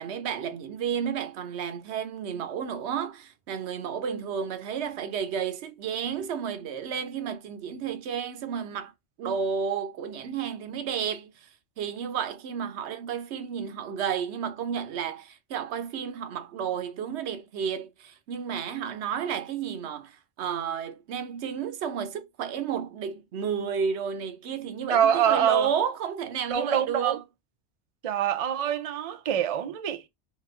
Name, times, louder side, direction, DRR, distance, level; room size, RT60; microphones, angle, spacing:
voice 1, 0.0-8.9 9.2-11.5 11.8-27.2, right 7 dB, 75° right, 0.9 m, -32 dB
voice 2, 24.9-25.7 26.5-27.2 28.0-30.1, right 9 dB, 55° right, 0.4 m, -25 dB
3.0 x 2.9 x 2.3 m
omnidirectional pair, 1.1 m